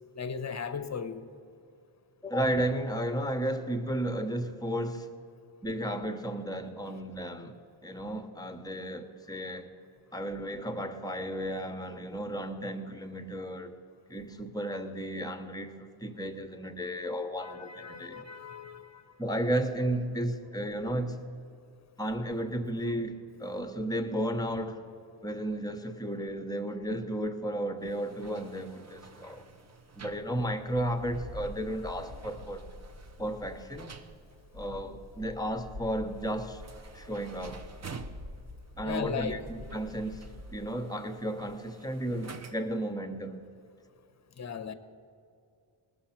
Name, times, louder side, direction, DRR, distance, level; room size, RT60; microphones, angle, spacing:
voice 1, 0.1-1.2 17.4-19.0 38.8-39.4 44.4-44.7, left 6 dB, 35° left, 11 dB, 0.8 m, -37 dB
voice 2, 2.2-5.1 5.6-7.5 7.8-9.7 10.1-13.8 14.1-18.2 19.2-21.2 22.0-24.8 25.2-29.4 30.0-32.6 33.2-33.9 34.5-36.6 36.9-37.7 38.8-40.2 40.5-43.4, right 1 dB, 10° left, 7 dB, 1.0 m, -33 dB
sound 1, 27.8-42.9, right 5 dB, 35° right, 0.7 m, -51 dB
Wind, 30.7-40.7, left 1 dB, 85° right, 2.4 m, -47 dB
19.0 x 6.9 x 5.8 m, 2.5 s
cardioid pair, 100°, 49 cm